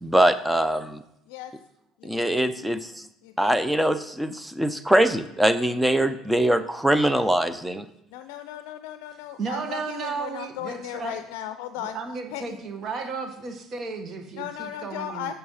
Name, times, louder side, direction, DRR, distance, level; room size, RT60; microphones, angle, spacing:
voice 1, 0.0-1.0 2.0-3.0 3.4-7.9, right 1 dB, 5° right, 12 dB, 0.6 m, -22 dB
voice 2, 2.0-2.6 3.2-3.7 8.1-12.0 12.3-12.6 14.4-15.3, left 11 dB, 80° left, 10 dB, 0.4 m, -36 dB
voice 3, 9.4-11.2 11.8-15.3, right 4 dB, 45° right, 6 dB, 1.4 m, -34 dB
6.8 x 6.3 x 5.6 m, 0.80 s
supercardioid pair, 85°, 0 cm